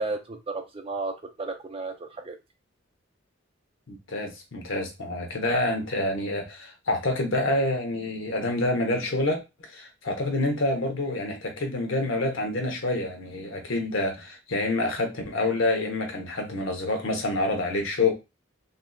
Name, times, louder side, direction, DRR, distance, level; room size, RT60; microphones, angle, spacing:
voice 1, 0.0-2.4, right 3 dB, 30° right, 0.5 m, -33 dB
voice 2, 3.9-9.4 9.7-18.1, left 2 dB, 80° left, 0.9 m, -27 dB
3.3 x 2.8 x 2.3 m
head